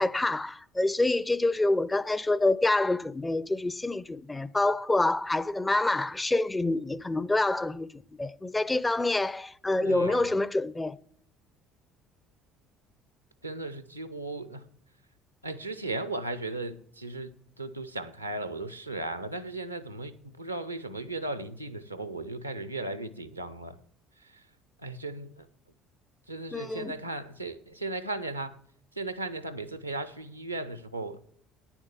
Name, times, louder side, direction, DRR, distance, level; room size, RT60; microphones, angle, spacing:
voice 1, 0.0-11.0 26.5-26.9, left 2 dB, 15° left, 0.4 m, -27 dB
voice 2, 9.8-10.4 13.4-14.6 15.4-17.3 17.6-23.8 24.2-24.5 24.8-25.5 26.3-28.6 28.9-31.2, right 2 dB, 90° right, 0.6 m, -36 dB
9.9 x 7.1 x 7.1 m
figure-of-eight pair, 60°, 0 cm